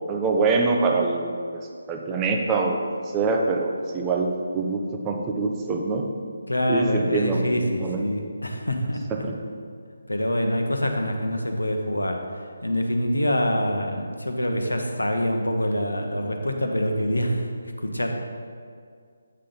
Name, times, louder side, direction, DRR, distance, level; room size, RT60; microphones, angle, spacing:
voice 1, 0.1-1.6 1.9-6.1 6.7-8.1 9.1-9.3, right 3 dB, 15° right, 1 dB, 0.6 m, -25 dB
voice 2, 6.5-9.0 10.1-12.3 12.6-17.5 17.8-18.1, equal, 75° left, 4 dB, 0.9 m, -25 dB
8.6 x 3.8 x 5.4 m, 2.1 s
figure-of-eight pair, 150°, 0 cm